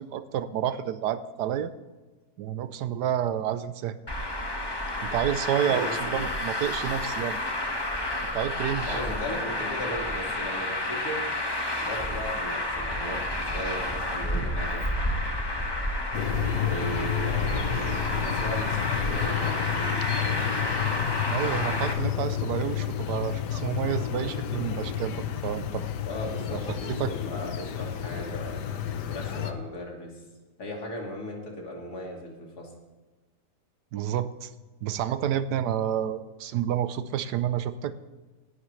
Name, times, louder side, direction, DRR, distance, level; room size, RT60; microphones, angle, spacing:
voice 1, 0.0-1.7 2.4-4.0 5.0-7.4 8.2-9.0 21.3-25.8 26.5-27.1 33.9-34.5 34.8-37.9, right 10 dB, 80° right, 13 dB, 1.3 m, -29 dB
Traffic noise roadway noise, 4.1-21.9, left 1 dB, 15° left, 1.1 m, -30 dB
voice 2, 5.7-6.3 8.9-11.3 11.8-14.9 16.6-20.5 26.1-28.6 29.1-30.1 30.6-32.7, equal, 65° left, 0 dB, 2.9 m, -37 dB
sound 1, 16.1-29.5, left 10 dB, 85° left, 1.4 m, -30 dB
17.5 x 11.0 x 3.2 m, 1.3 s
omnidirectional pair, 1.8 m